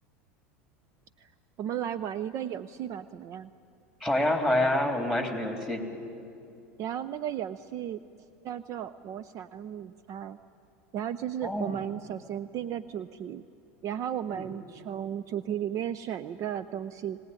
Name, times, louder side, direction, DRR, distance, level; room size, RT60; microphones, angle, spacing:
voice 1, 1.6-3.5 6.8-8.0 8.4-10.4 10.9-13.4 13.8-17.2, right 10 dB, 45° right, 14 dB, 0.6 m, -34 dB
voice 2, 4.0-5.8 11.4-11.8 14.3-14.5, left 1 dB, 5° right, 4 dB, 3.7 m, -27 dB
22.0 x 19.0 x 9.8 m, 2.6 s
hypercardioid pair, 90°, 7 cm